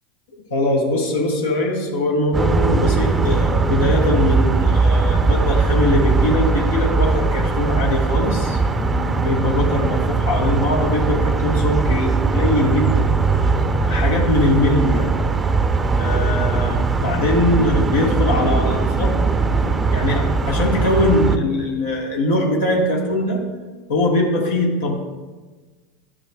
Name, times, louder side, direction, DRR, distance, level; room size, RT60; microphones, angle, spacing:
voice 1, 0.5-13.1 13.8-15.1 16.0-19.1 19.5-23.4 23.9-24.9, left 1 dB, 90° left, -2 dB, 1.3 m, -21 dB
sound 1, 2.3-21.4, right 4 dB, 20° right, 0.5 m, -19 dB
11.5 x 6.3 x 2.3 m, 1.3 s
hypercardioid pair, 100°, 0 cm